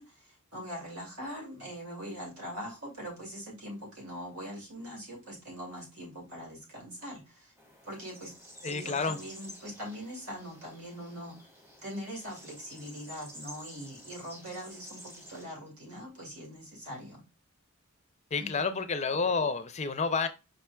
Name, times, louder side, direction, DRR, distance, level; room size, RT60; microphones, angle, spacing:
voice 1, 0.0-7.5 7.8-8.3 8.7-11.4 11.8-17.2 18.4-18.9, equal, 80° right, 2.5 m, -42 dB
sound 1, 7.6-15.4, left 1 dB, 10° right, 1.0 m, -50 dB
voice 2, 8.6-9.2 18.3-20.3, left 4 dB, 30° left, 0.4 m, -29 dB
5.2 x 4.3 x 2.3 m
head